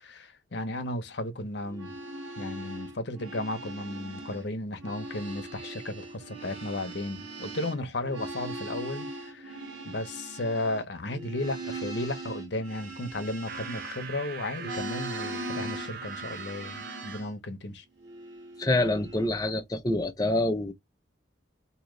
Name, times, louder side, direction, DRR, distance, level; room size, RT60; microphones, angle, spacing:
voice 1, 0.0-2.0 2.4-17.8, left 1 dB, 60° left, 0.9 m, -34 dB
sound 1, 1.6-4.5 4.7-14.2 14.6-17.4 18.0-19.3, right 2 dB, 65° right, 1.7 m, -40 dB
sound 2, 13.5-17.2, right 6 dB, 50° right, 0.7 m, -41 dB
voice 2, 18.6-20.7, left 2 dB, 20° left, 0.6 m, -26 dB
3.8 x 2.9 x 3.1 m
head